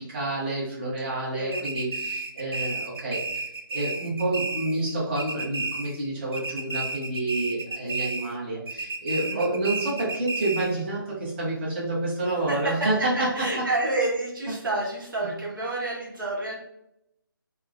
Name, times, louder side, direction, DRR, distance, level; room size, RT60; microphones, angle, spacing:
voice 1, 0.0-13.7 15.2-15.3, right 2 dB, 30° right, -6 dB, 0.9 m, -29 dB
voice 2, 1.4-1.7 9.1-9.4 12.5-16.6, right 2 dB, 60° right, -2 dB, 0.9 m, -29 dB
sound 1, 1.5-4.9 5.2-6.1 6.3-8.4 8.7-10.8, right 3 dB, 80° right, 0.5 m, -32 dB
3.5 x 2.0 x 2.4 m, 0.78 s
figure-of-eight pair, 155°, 12 cm